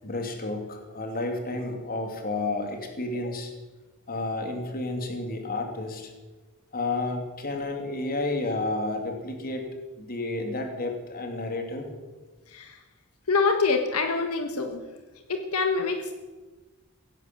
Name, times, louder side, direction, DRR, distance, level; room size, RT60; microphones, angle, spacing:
voice 1, 0.0-3.5 4.1-6.1 6.7-9.7 10.0-11.9, left 2 dB, 45° left, 4 dB, 2.7 m, -31 dB
voice 2, 12.5-12.8 13.3-14.8 15.3-16.1, left 4 dB, 85° left, 5 dB, 1.4 m, -25 dB
16.5 x 10.5 x 7.6 m, 1.2 s
head